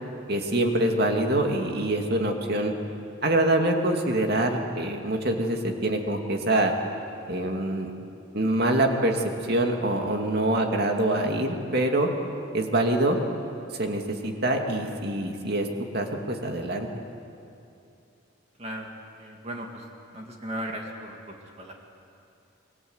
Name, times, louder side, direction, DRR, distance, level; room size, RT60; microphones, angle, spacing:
voice 1, 0.3-2.7 3.2-6.7 7.3-7.9 8.3-12.1 12.5-13.2 13.7-15.7 15.9-16.9, right 1 dB, 50° right, 3 dB, 2.5 m, -25 dB
voice 2, 18.6-19.8 20.1-21.7, right 1 dB, 30° right, 1 dB, 2.4 m, -37 dB
28.0 x 22.5 x 8.1 m, 2.8 s
head